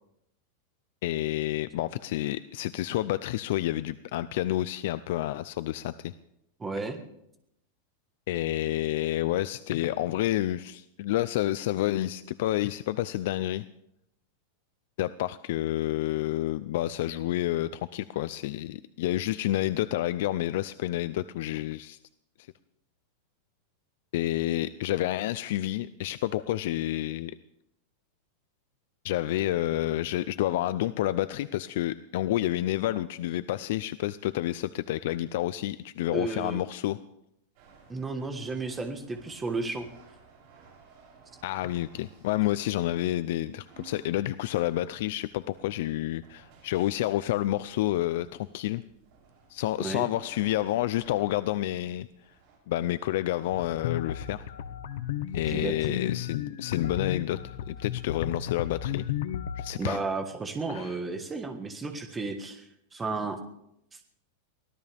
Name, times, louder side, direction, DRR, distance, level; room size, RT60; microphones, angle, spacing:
voice 1, 1.0-6.1 8.3-13.6 15.0-22.0 24.1-27.3 29.0-37.0 41.4-48.8 49.5-52.1 52.7-54.5 55.3-59.1 59.6-60.0 60.7-61.0, left 14 dB, 55° left, 14 dB, 0.5 m, -29 dB
voice 2, 6.6-7.0 36.1-36.6 37.9-39.9 49.8-50.1 55.5-56.0 59.7-62.6 62.9-63.4, right 3 dB, 10° right, 6 dB, 1.5 m, -33 dB
sound 1, 37.6-52.6, right 5 dB, 45° right, 7.6 m, -57 dB
sound 2, 53.5-59.7, left 10 dB, 75° left, 1.2 m, -34 dB
23.5 x 17.0 x 3.5 m, 0.79 s
supercardioid pair, 170°, 0 cm